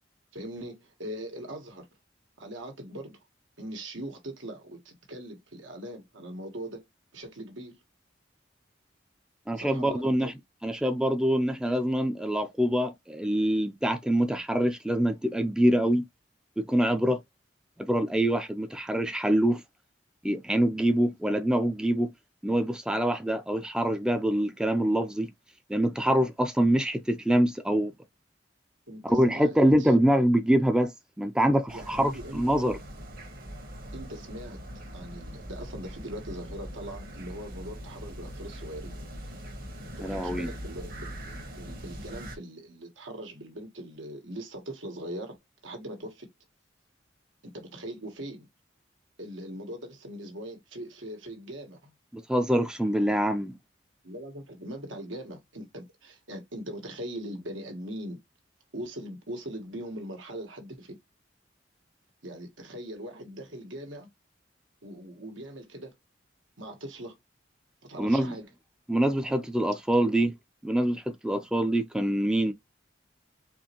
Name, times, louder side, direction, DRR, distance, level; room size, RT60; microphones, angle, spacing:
voice 1, 0.3-1.9 2.4-3.2 3.6-6.9 7.1-7.8 9.6-10.3 28.9-29.9 31.7-32.4 33.9-34.6 34.9-38.9 40.0-45.4 45.6-46.3 47.4-48.5 49.2-51.9 54.0-58.2 58.7-61.0 62.2-64.1 64.8-65.9 66.6-67.2 67.8-68.5 69.3-69.4 70.0-70.1, right 1 dB, 85° right, 1.5 m, -41 dB
voice 2, 9.5-10.3 10.6-16.0 16.6-17.2 17.8-19.6 20.2-22.1 22.4-25.3 25.7-27.9 29.0-30.9 31.2-32.8 40.0-40.5 52.1-53.6 68.0-68.4 68.9-70.3 70.6-72.5, right 1 dB, 5° right, 0.4 m, -25 dB
sound 1, 31.7-42.4, equal, 50° right, 1.2 m, -41 dB
4.4 x 3.1 x 2.9 m
head